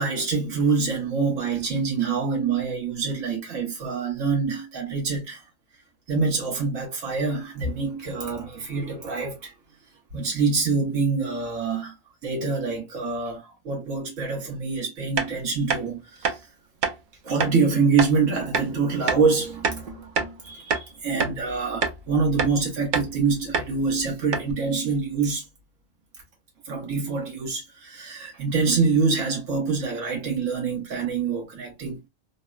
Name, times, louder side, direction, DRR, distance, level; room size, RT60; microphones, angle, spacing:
voice 1, 0.0-5.4 6.1-9.5 10.1-11.9 12.2-16.4 17.2-25.4 26.7-32.0, right 4 dB, 80° right, 1.5 m, -25 dB
sound 1, 15.2-15.3 15.7-15.8 16.2-16.4 16.8-17.0 17.4-17.6 18.0-18.1 18.5-18.7 19.1-19.2 19.6-20.4 20.7-20.9 21.2-21.4 21.8-22.0 22.4-22.5 22.9-23.1 23.5-23.7 24.0-24.1 24.3-24.5, right 5 dB, 60° right, 0.5 m, -25 dB
3.4 x 2.1 x 2.3 m
omnidirectional pair, 1.3 m